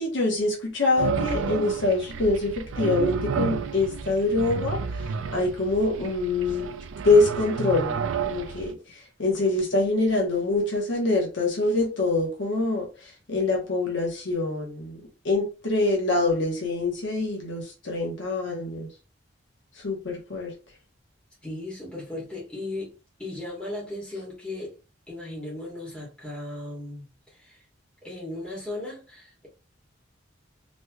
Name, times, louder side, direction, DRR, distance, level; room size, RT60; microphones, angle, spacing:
voice 1, 0.0-6.7 7.0-8.0 8.3-18.9 19.8-20.5, left 2 dB, 75° left, 1.0 m, -25 dB
sound 1, 1.0-8.7, right 6 dB, 90° right, 0.4 m, -31 dB
voice 2, 21.4-24.8 25.1-27.6 28.0-29.5, left 2 dB, 5° left, 1.5 m, -37 dB
3.2 x 3.1 x 2.3 m
head